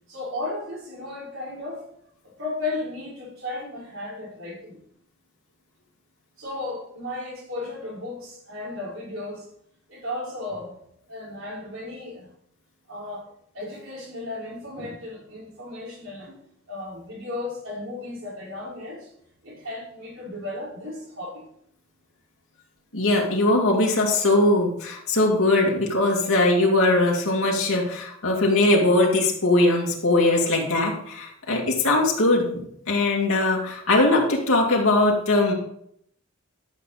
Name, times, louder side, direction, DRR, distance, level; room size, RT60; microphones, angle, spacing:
voice 1, 0.1-1.9 2.2-4.8 6.4-9.5 9.9-10.8 11.1-12.3 12.9-13.3 13.5-16.4 16.7-19.1 19.4-21.5, left 2 dB, 70° right, -4 dB, 4.8 m, -35 dB
voice 2, 22.9-35.5, left 2 dB, 85° left, -2 dB, 2.4 m, -21 dB
12.0 x 6.7 x 4.2 m, 0.71 s
head